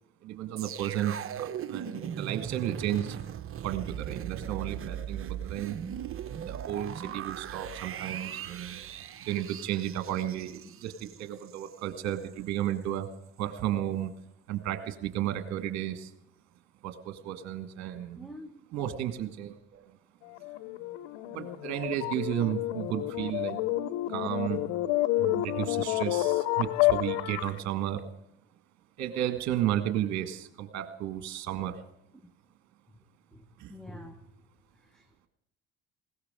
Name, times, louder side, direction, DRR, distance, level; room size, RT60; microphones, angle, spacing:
voice 1, 0.2-3.2 3.6-5.8 6.5-8.9 9.2-13.1 13.4-14.1 14.5-16.1 16.8-18.3 18.7-19.8 21.3-23.6 24.1-24.7 25.2-28.0 29.0-31.8 33.6-33.7, right 11 dB, 60° right, 8 dB, 1.7 m, -33 dB
sound 1, 0.6-11.7 12.1-12.2, right 9 dB, 40° right, 1.1 m, -39 dB
voice 2, 18.2-18.6 32.1-32.3 33.3-34.4 34.7-35.3, equal, ahead, 5 dB, 1.7 m, -48 dB
sound 2, 20.3-27.6, left 15 dB, 70° left, 1.0 m, -29 dB
20.0 x 17.0 x 3.8 m, 0.77 s
hypercardioid pair, 65°, 32 cm